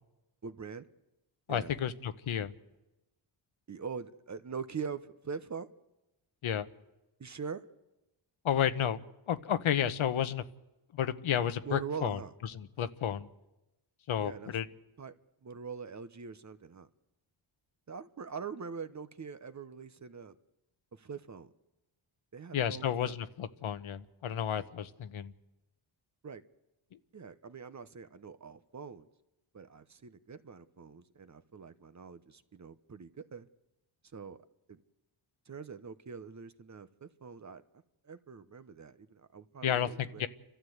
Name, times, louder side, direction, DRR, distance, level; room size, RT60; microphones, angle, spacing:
voice 1, 0.4-0.9 1.5-1.7 3.7-5.7 7.2-7.6 11.6-12.3 14.2-14.5 15.0-15.1 15.4-16.9 17.9-20.4 20.9-21.5 22.3-23.2 26.2-26.4 27.1-29.1 29.5-33.5 34.1-34.4 34.7-34.8 35.5-37.6 38.0-40.2, right 6 dB, 35° right, 12 dB, 1.0 m, -43 dB
voice 2, 1.5-2.5 6.4-6.7 8.4-9.0 9.3-10.4 10.9-13.3 14.1-14.7 22.5-25.3 26.9-27.0 39.6-40.3, left 9 dB, 75° left, 11 dB, 1.1 m, -32 dB
30.0 x 12.5 x 8.0 m, 1.0 s
cardioid pair, 85°, 48 cm